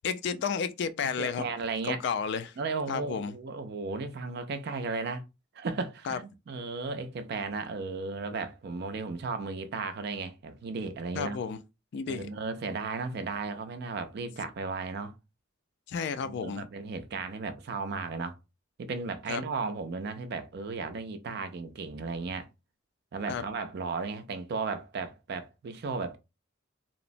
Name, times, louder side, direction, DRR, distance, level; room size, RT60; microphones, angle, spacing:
voice 1, 0.0-1.5 1.9-2.5 2.9-3.3 6.1-6.2 11.2-11.6 11.9-12.3 15.9-16.6 19.3-19.4 23.3-23.4, left 6 dB, 60° left, 0.3 m, -32 dB
voice 2, 1.0-2.0 2.6-5.2 5.5-11.4 12.1-15.1 16.2-18.4 18.8-22.5 23.1-26.2, right 4 dB, 55° right, 0.4 m, -35 dB
2.8 x 2.0 x 2.5 m
head